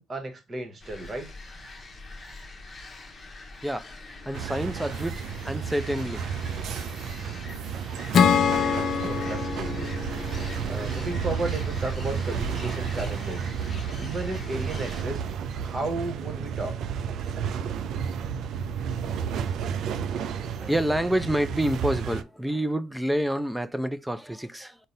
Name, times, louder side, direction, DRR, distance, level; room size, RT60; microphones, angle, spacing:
voice 1, 0.0-1.3 9.0-9.9 10.7-13.6 14.0-15.2 15.5-16.8, right 2 dB, 35° right, 1.1 m, -34 dB
sound 1, 0.8-15.0, left 3 dB, 30° left, 0.9 m, -44 dB
voice 2, 3.6-6.3 20.6-24.8, right 1 dB, 5° right, 0.5 m, -28 dB
sound 2, 4.3-22.2, right 7 dB, 65° right, 0.4 m, -32 dB
Acoustic guitar / Strum, 8.1-11.6, left 7 dB, 60° left, 0.5 m, -25 dB
4.0 x 2.2 x 3.9 m
supercardioid pair, 65°, 0 cm